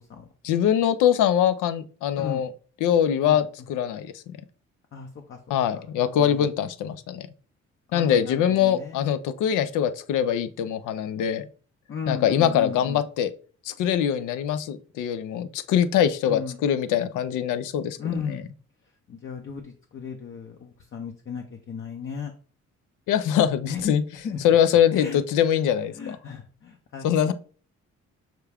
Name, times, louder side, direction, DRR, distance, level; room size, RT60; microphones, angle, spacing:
voice 1, 0.4-2.5 2.8-4.4 5.5-7.3 7.9-11.5 12.1-13.3 13.6-18.4 23.1-24.0 24.4-26.2 27.0-27.3, left 9 dB, 85° left, 12 dB, 0.5 m, -23 dB
voice 2, 4.9-5.6 6.2-6.4 7.9-9.0 11.9-13.0 16.3-16.6 18.0-18.4 19.1-22.3 23.7-23.9 24.2-24.4 24.9-25.2 26.0-27.0, left 6 dB, 45° left, 3 dB, 0.6 m, -35 dB
5.8 x 2.3 x 3.4 m, 0.40 s
cardioid pair, 90°, 30 cm